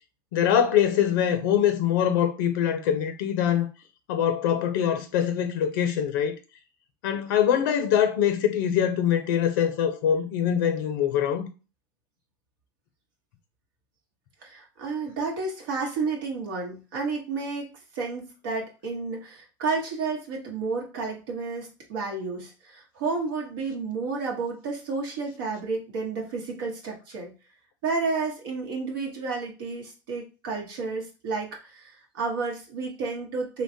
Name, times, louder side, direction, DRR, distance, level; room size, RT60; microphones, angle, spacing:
voice 1, 0.3-3.7 4.1-6.3 7.0-11.5, left 9 dB, 70° left, 0.5 m, -23 dB
voice 2, 14.4-27.3 27.8-33.6, right 4 dB, 75° right, 0.9 m, -31 dB
3.1 x 2.3 x 2.6 m
hypercardioid pair, 100°, 11 cm